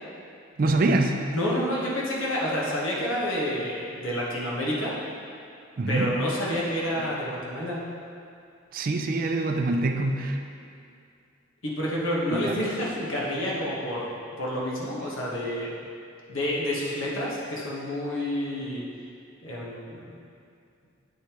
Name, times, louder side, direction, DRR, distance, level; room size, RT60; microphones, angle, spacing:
voice 1, 0.6-1.2 5.8-6.1 7.0-7.1 8.7-10.4 12.3-12.6, right 2 dB, 45° right, 4 dB, 0.4 m, -25 dB
voice 2, 1.3-4.9 5.9-7.8 11.6-15.7 16.3-18.8 19.4-20.2, equal, 75° left, -5 dB, 1.3 m, -29 dB
7.8 x 5.2 x 3.0 m, 2.5 s
head